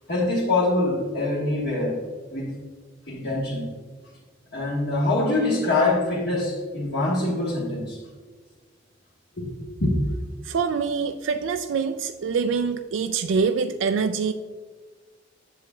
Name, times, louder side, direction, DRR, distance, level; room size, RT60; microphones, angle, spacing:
voice 1, 0.1-2.0 2.3-2.5 3.1-3.7 4.5-8.0 9.4-9.5 9.8-9.9, left 2 dB, 60° left, -6 dB, 1.3 m, -24 dB
voice 2, 10.5-14.3, right 5 dB, 85° right, 7 dB, 0.4 m, -25 dB
7.6 x 7.3 x 2.3 m, 1.5 s
head